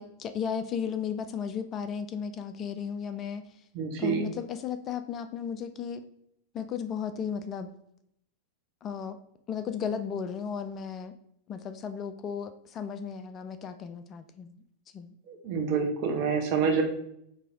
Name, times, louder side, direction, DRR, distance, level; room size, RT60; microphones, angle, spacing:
voice 1, 0.0-3.4 4.0-6.0 6.5-7.7 8.8-9.2 9.5-11.1 11.5-14.6 14.9-15.1, left 7 dB, 30° left, 9 dB, 0.3 m, -35 dB
voice 2, 3.7-4.3 15.3-16.8, right 5 dB, 45° right, 2 dB, 0.9 m, -27 dB
4.7 x 2.8 x 3.7 m, 0.73 s
figure-of-eight pair, 90°, 0 cm